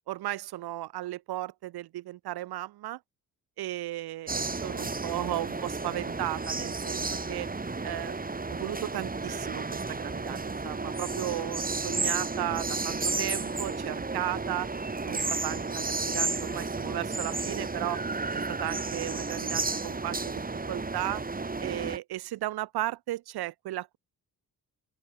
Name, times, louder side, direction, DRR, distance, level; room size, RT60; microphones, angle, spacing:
voice 1, 0.1-3.0 3.6-7.5 7.8-8.2 8.5-14.7 15.1-18.0 18.3-20.3 20.7-21.2 21.6-24.0, right 15 dB, 90° right, 1.6 m, -35 dB
sound 1, 4.3-22.0, right 3 dB, 25° right, 3.4 m, -32 dB
open air
cardioid pair, 85°, 37 cm